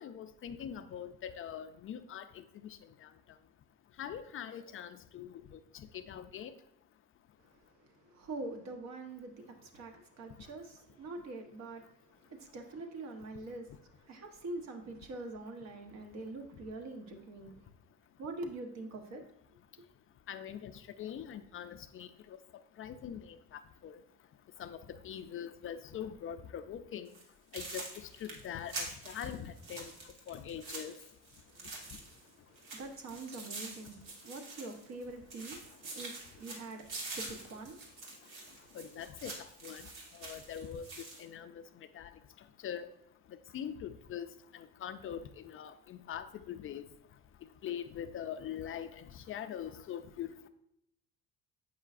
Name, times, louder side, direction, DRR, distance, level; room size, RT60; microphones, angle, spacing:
voice 1, 0.0-2.2 4.0-5.3 5.9-6.5 20.3-20.7 21.0-22.1 22.8-23.4 23.8-24.0 24.6-24.8 25.0-27.1 27.5-27.9 28.2-29.9 30.3-30.9 38.7-39.3 39.6-39.8 40.2-40.9 41.2-41.6 42.0-42.1 42.6-42.9 43.5-44.3 44.5-46.8 47.6-50.5, left 9 dB, 40° left, 9 dB, 0.4 m, -42 dB
voice 2, 8.1-11.8 12.4-13.7 14.1-17.5 18.2-19.2 32.7-34.0 34.2-35.6 35.9-37.8, right 2 dB, 55° right, 4 dB, 1.0 m, -44 dB
sound 1, 27.1-27.2 27.5-32.3 32.6-35.0 35.3-41.2, right 3 dB, 75° right, 1.6 m, -46 dB
7.5 x 5.5 x 2.4 m, 0.76 s
supercardioid pair, 85°, 32 cm